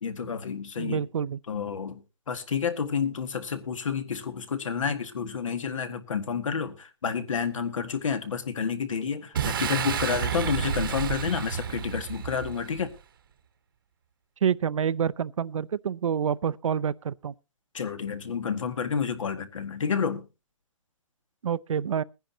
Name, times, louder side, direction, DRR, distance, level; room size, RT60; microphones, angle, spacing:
voice 1, 0.0-1.0 1.5-2.0 2.3-12.9 17.7-20.3, left 6 dB, 75° left, 1.8 m, -30 dB
voice 2, 0.8-1.4 14.4-17.3 21.4-22.0, right 8 dB, 75° right, 0.6 m, -27 dB
Boom, 9.3-13.0, right 8 dB, 40° right, 1.0 m, -30 dB
21.5 x 10.5 x 2.8 m
hypercardioid pair, 170°, 17 cm